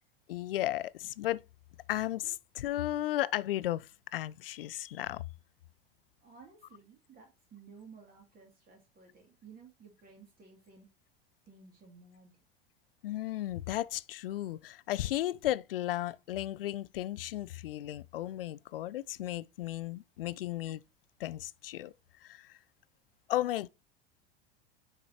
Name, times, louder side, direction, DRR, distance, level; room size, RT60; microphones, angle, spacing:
voice 1, 0.3-1.4 1.9-5.2 13.0-20.8 21.2-21.9 22.2-22.6 23.3-23.7, left 14 dB, 70° left, 0.5 m, -34 dB
voice 2, 6.2-10.9 11.5-12.4 20.3-20.4, right 5 dB, 30° right, 2.4 m, -55 dB
9.8 x 4.8 x 2.8 m
figure-of-eight pair, 80°, 30 cm